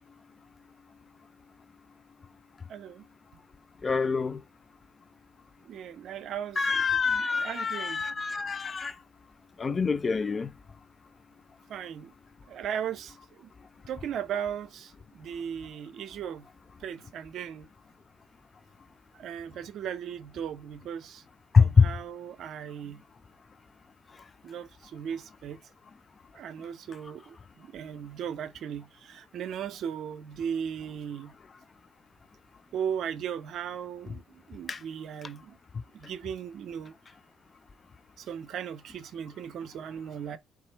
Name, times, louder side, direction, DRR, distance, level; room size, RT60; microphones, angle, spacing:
voice 1, 2.7-3.1 5.6-8.0 11.7-12.1 12.5-13.5 13.9-16.5 16.8-17.7 19.2-21.2 21.6-23.0 24.4-25.6 26.3-31.3 32.7-35.6 35.9-36.9 38.2-40.4, right 8 dB, 65° right, 0.5 m, -37 dB
voice 2, 3.8-4.4 6.6-8.9 9.6-10.5 21.5-21.9 34.7-34.8, left 5 dB, 40° left, 0.5 m, -24 dB
4.2 x 2.4 x 3.9 m
hypercardioid pair, 50°, 0 cm